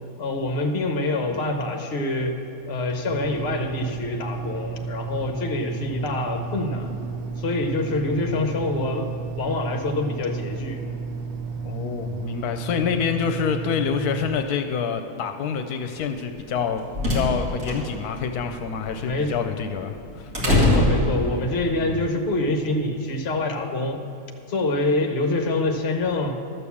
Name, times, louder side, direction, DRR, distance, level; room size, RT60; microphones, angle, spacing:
voice 1, 0.2-2.3 2.7-6.9 7.4-9.1 9.4-10.8 19.0-19.3 20.4-24.0 24.5-26.4, left 2 dB, 45° left, 4 dB, 1.2 m, -26 dB
sound 1, 3.0-14.4, right 5 dB, 85° right, 1.5 m, -33 dB
voice 2, 11.6-20.3 21.8-22.0, left 6 dB, 80° left, 7 dB, 1.1 m, -27 dB
sound 2, 16.4-21.7, left 1 dB, 65° right, 2.7 m, -24 dB
12.0 x 6.8 x 7.0 m, 2.8 s
omnidirectional pair, 1.6 m